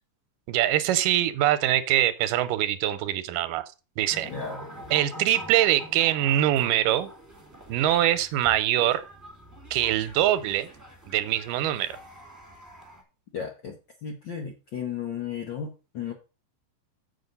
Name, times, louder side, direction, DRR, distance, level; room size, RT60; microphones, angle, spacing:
voice 1, 0.5-3.7 4.0-4.3 4.9-7.1 7.7-9.0 9.7-10.7 11.1-12.0, right 12 dB, 85° right, 13 dB, 2.4 m, -23 dB
sound 1, 4.1-13.0, right 1 dB, 5° right, 1.7 m, -45 dB
voice 2, 4.2-4.6 13.3-13.8 14.0-16.1, left 7 dB, 85° left, 3 dB, 1.0 m, -34 dB
7.3 x 6.4 x 5.3 m, 0.32 s
omnidirectional pair, 3.8 m